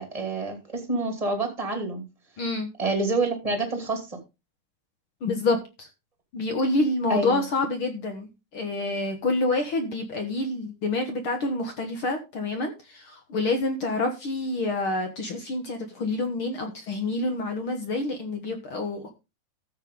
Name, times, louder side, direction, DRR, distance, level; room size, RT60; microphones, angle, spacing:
voice 1, 0.0-2.0 2.8-4.2 7.1-7.4, right 2 dB, 10° right, 4 dB, 2.1 m, -27 dB
voice 2, 2.4-2.7 5.2-5.9 6.3-19.1, left 2 dB, 60° left, 6 dB, 1.4 m, -27 dB
14.0 x 7.5 x 3.8 m, 0.26 s
omnidirectional pair, 4.4 m